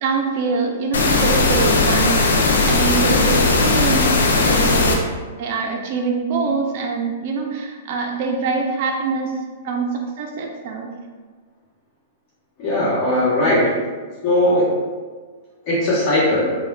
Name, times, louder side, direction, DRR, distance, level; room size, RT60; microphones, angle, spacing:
voice 1, 0.0-2.2 2.7-5.1 5.4-9.3 9.6-10.9, right 4 dB, 50° right, 0 dB, 0.4 m, -24 dB
sound 1, 0.9-4.9, left 3 dB, 80° left, 0.4 m, -17 dB
voice 2, 12.6-13.7 14.2-14.8 15.7-16.6, left 1 dB, 40° left, -8 dB, 0.9 m, -18 dB
3.1 x 2.1 x 2.3 m, 1.4 s
hypercardioid pair, 120°, 0 cm